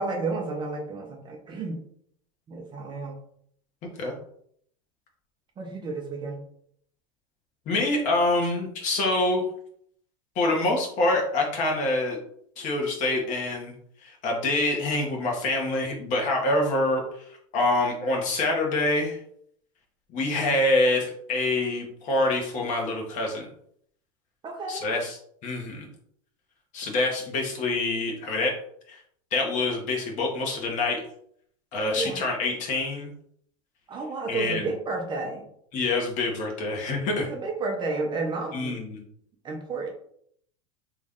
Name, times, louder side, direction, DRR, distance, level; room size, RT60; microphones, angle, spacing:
voice 1, 0.0-1.8 2.5-3.2 5.6-6.4 24.4-24.9 32.0-32.2 33.9-35.5 37.2-38.8 39.4-39.9, right 3 dB, 25° right, 1 dB, 0.7 m, -31 dB
voice 2, 7.7-9.4 10.3-12.2 12.6-13.7 14.0-19.2 20.1-23.5 24.7-25.9 26.7-28.6 28.9-29.0 29.3-31.0 31.7-33.1 34.3-34.7 35.7-37.3 38.5-39.0, left 2 dB, 45° left, 0 dB, 1.2 m, -26 dB
3.1 x 2.6 x 3.6 m, 0.66 s
supercardioid pair, 120°, 18 cm